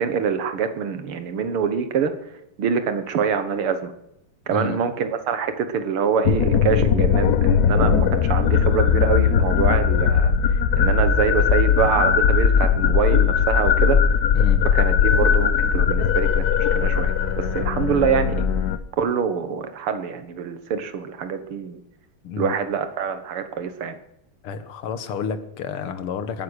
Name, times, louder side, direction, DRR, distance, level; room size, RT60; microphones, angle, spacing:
voice 1, 0.0-2.1 2.6-3.9 4.5-10.3 10.7-14.0 14.7-18.5 19.0-21.8 22.4-24.0, right 6 dB, 80° right, 9 dB, 2.2 m, -25 dB
voice 2, 4.5-4.8 14.3-14.6 22.2-22.6 24.4-26.4, left 5 dB, 90° left, 11 dB, 2.1 m, -30 dB
sound 1, 6.2-18.8, left 7 dB, 60° left, 1.1 m, -19 dB
20.0 x 9.8 x 6.4 m, 0.83 s
omnidirectional pair, 2.4 m